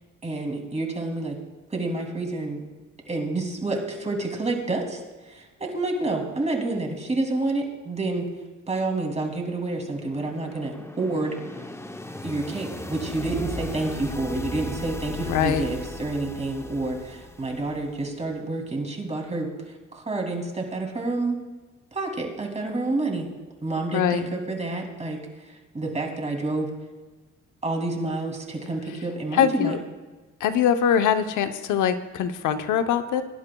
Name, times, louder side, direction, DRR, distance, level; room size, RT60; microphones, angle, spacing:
voice 1, 0.2-1.4 1.7-2.6 3.1-5.0 5.3-8.3 8.7-11.4 12.2-21.4 21.9-23.3 23.6-25.2 25.5-26.7 27.6-29.8, right 2 dB, 20° right, 0 dB, 2.7 m, -29 dB
sound 1, 9.6-18.2, left 2 dB, 10° left, 0.7 m, -37 dB
voice 2, 15.3-15.7 23.9-24.3 29.4-29.8 30.4-33.2, left 9 dB, 80° left, 9 dB, 0.8 m, -22 dB
22.5 x 11.0 x 2.3 m, 1.3 s
cardioid pair, 90°, 30 cm